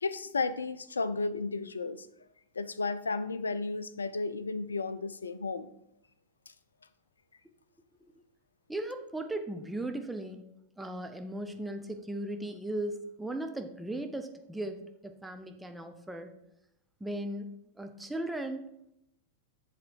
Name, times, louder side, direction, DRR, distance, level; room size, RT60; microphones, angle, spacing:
voice 1, 0.0-2.1 2.6-5.7, left 3 dB, 75° left, 14 dB, 0.4 m, -33 dB
voice 2, 8.7-10.4 10.8-16.3 17.0-17.5 17.8-18.9, right 1 dB, 5° right, 6 dB, 0.5 m, -37 dB
7.5 x 4.1 x 4.6 m, 0.80 s
figure-of-eight pair, 90°, 0 cm